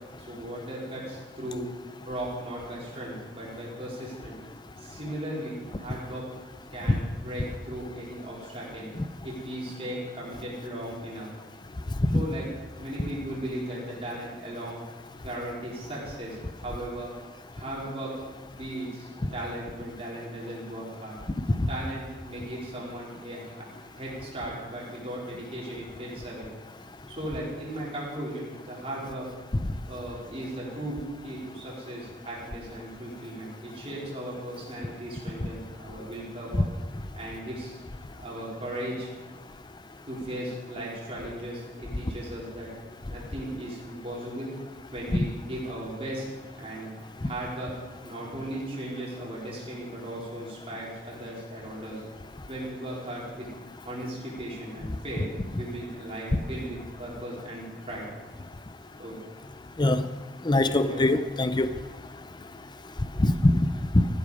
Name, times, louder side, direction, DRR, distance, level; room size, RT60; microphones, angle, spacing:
voice 1, 0.2-1.7 2.1-4.4 4.8-6.2 6.7-8.9 9.2-11.3 12.1-12.5 12.8-14.8 15.2-17.1 17.5-18.1 18.4-21.2 21.7-23.7 23.9-26.5 27.1-29.3 29.9-31.0 31.2-36.7 37.2-37.8 38.2-39.1 40.1-42.7 43.1-44.5 44.9-46.3 46.5-46.9 47.2-47.7 48.0-52.0 52.5-53.5 53.8-55.2 55.5-58.1 59.0-59.2 59.8-59.9 60.6-61.0 61.8-61.9, right 1 dB, 30° right, -5 dB, 4.3 m, -37 dB
voice 2, 60.4-61.7 63.2-63.6, left 2 dB, 25° left, 11 dB, 0.6 m, -22 dB
14.5 x 13.0 x 4.9 m, 1.2 s
head